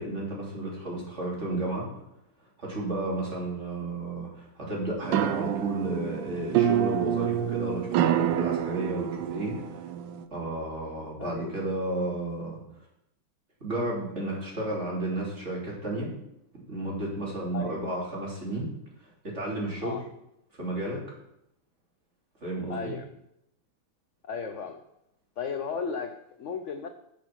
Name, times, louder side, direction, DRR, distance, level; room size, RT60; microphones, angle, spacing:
voice 1, 0.0-1.9 2.6-9.8 10.3-12.6 13.6-16.1 16.7-18.7 19.2-20.0 20.5-21.0 22.4-22.9, right 2 dB, 35° right, -4 dB, 3.4 m, -32 dB
sound 1, 5.0-10.2, right 10 dB, 85° right, 1.3 m, -27 dB
voice 2, 11.2-11.5 17.5-17.9 19.8-20.0 22.7-23.1 24.2-24.8 25.4-26.9, left 5 dB, 65° left, 6 dB, 0.7 m, -35 dB
10.0 x 6.2 x 6.0 m, 0.81 s
omnidirectional pair, 2.0 m